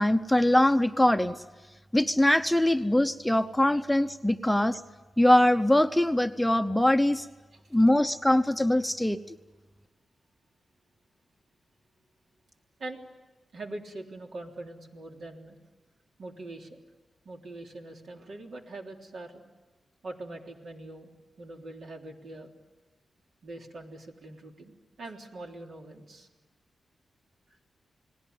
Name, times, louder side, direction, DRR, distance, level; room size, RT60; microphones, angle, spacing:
voice 1, 0.0-1.4 1.9-4.8 5.2-7.3 7.7-9.2, left 1 dB, 5° left, 8 dB, 0.8 m, -22 dB
voice 2, 13.5-15.6 16.2-16.8 17.3-19.4 20.0-21.1 21.4-22.5 23.4-26.3, right 2 dB, 70° right, 1 dB, 3.4 m, -43 dB
29.5 x 19.5 x 9.5 m, 1.2 s
wide cardioid pair, 100°, 0 cm